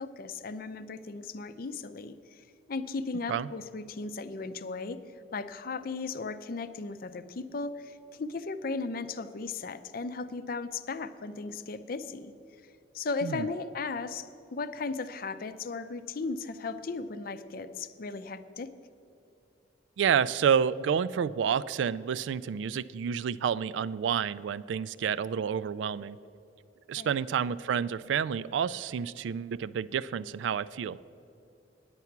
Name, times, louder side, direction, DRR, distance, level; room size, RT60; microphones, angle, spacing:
voice 1, 0.0-5.0 5.3-12.3 12.6-18.7 27.0-27.2, left 4 dB, 55° left, 12 dB, 0.5 m, -36 dB
voice 2, 20.0-26.2 26.9-31.0, right 7 dB, 80° right, 17 dB, 0.3 m, -29 dB
9.6 x 9.2 x 5.8 m, 2.7 s
head